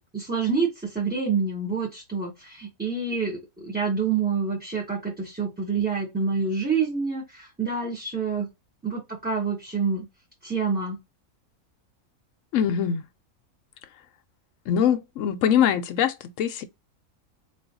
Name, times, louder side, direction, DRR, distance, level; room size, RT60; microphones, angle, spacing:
voice 1, 0.0-8.5 8.8-10.1 10.4-11.0, right 5 dB, 10° right, 0.7 m, -27 dB
voice 2, 12.5-13.0 14.7-16.6, left 9 dB, 70° left, 0.8 m, -23 dB
3.9 x 2.4 x 2.7 m
omnidirectional pair, 1.6 m